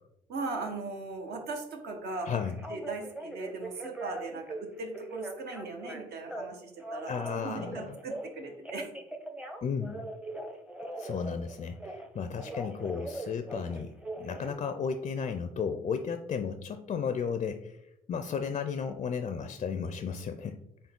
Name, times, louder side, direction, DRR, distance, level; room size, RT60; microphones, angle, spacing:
voice 1, 0.3-2.3 2.7-8.9, right 3 dB, 65° right, 3 dB, 1.0 m, -38 dB
Telephone, 2.1-4.6 4.9-6.5 6.8-8.3 8.6-12.1 12.4-14.5, right 2 dB, 5° right, 0.7 m, -41 dB
voice 2, 7.0-8.0 9.6-10.0 11.0-17.8 18.1-20.6, left 6 dB, 35° left, 9 dB, 0.4 m, -34 dB
3.9 x 3.7 x 3.6 m, 0.82 s
supercardioid pair, 65°, 18 cm